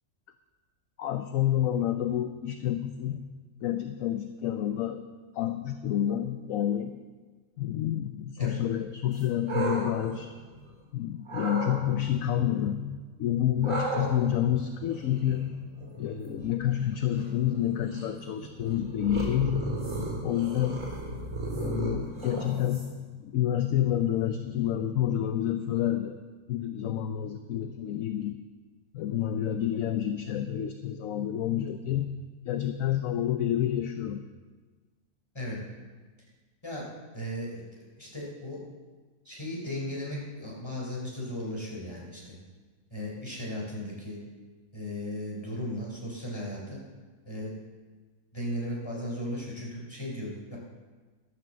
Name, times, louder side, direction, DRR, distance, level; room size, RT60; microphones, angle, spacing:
voice 1, 1.0-3.3 3.6-5.1 5.3-7.0 7.6-10.3 10.9-15.7 16.0-19.7 20.2-20.8 21.5-26.2 26.5-28.4 28.9-32.1 32.5-34.2, left 11 dB, 65° left, 8 dB, 1.0 m, -29 dB
sound 1, 9.1-10.8 11.3-11.8 13.6-23.1, right 3 dB, 55° right, 3.7 m, -36 dB
voice 2, 37.1-37.6 38.0-38.6 39.2-42.4 42.9-44.2 44.7-46.8 47.3-47.5 48.3-50.6, left 1 dB, 15° left, -3 dB, 3.7 m, -36 dB
12.5 x 9.6 x 7.4 m, 1.4 s
omnidirectional pair, 1.6 m